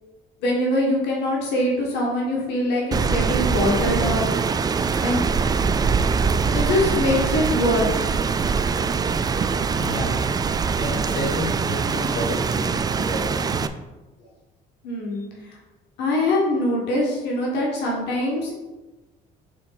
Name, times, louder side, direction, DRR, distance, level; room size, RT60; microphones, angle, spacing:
voice 1, 0.4-4.2 5.0-5.3 6.5-8.1 14.8-15.6 16.0-18.6, left 1 dB, 80° left, -3 dB, 1.7 m, -23 dB
Rain, 2.9-13.7, right 5 dB, 25° right, 0.3 m, -23 dB
voice 2, 9.8-10.1 10.8-13.6 15.1-15.3, left 1 dB, 55° left, -2 dB, 1.8 m, -31 dB
6.4 x 4.2 x 4.1 m, 1.1 s
cardioid pair, 110°, 17 cm